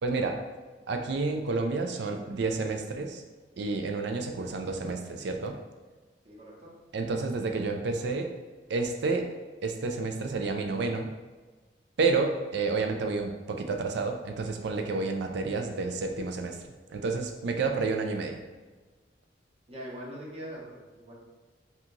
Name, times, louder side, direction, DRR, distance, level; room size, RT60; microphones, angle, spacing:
voice 1, 0.0-0.4 0.9-3.2 3.6-5.5 6.9-8.3 8.7-9.3 9.6-11.1 12.0-16.6 16.9-18.4, right 3 dB, 65° right, 4 dB, 0.4 m, -30 dB
voice 2, 6.2-6.7 19.7-21.1, equal, 35° right, -5 dB, 0.9 m, -42 dB
2.9 x 2.4 x 3.8 m, 1.3 s
head